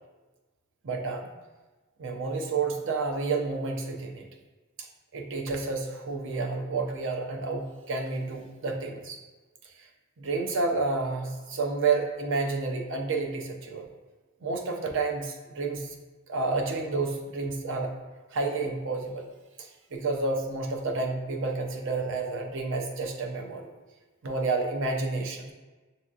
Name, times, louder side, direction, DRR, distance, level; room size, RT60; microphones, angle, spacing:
voice 1, 0.8-1.3 2.0-4.3 5.1-9.2 10.2-13.9 14.4-15.9 16.3-17.9 18.3-19.3 19.9-23.7 24.2-25.5, right 3 dB, 60° right, 2 dB, 0.6 m, -30 dB
6.3 x 2.8 x 2.4 m, 1.2 s
head